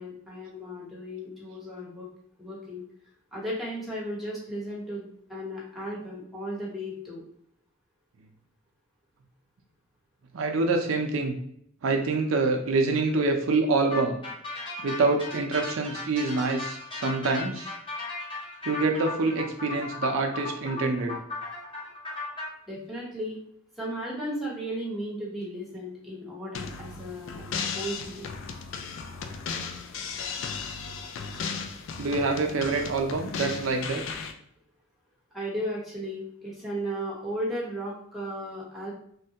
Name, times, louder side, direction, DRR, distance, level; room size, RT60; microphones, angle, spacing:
voice 1, 0.0-2.1 2.4-2.8 3.3-7.2 22.7-23.4 23.8-27.4 27.7-28.2 35.3-38.9, equal, ahead, -5 dB, 0.9 m, -35 dB
voice 2, 10.3-11.3 11.8-14.2 14.8-17.7 18.7-21.2 32.0-34.0, right 3 dB, 80° right, 4 dB, 0.4 m, -26 dB
sound 1, 13.9-22.5, left 3 dB, 25° left, 0.9 m, -36 dB
sound 2, 26.5-34.3, left 5 dB, 65° left, 0.4 m, -36 dB
3.2 x 2.2 x 2.7 m, 0.67 s
head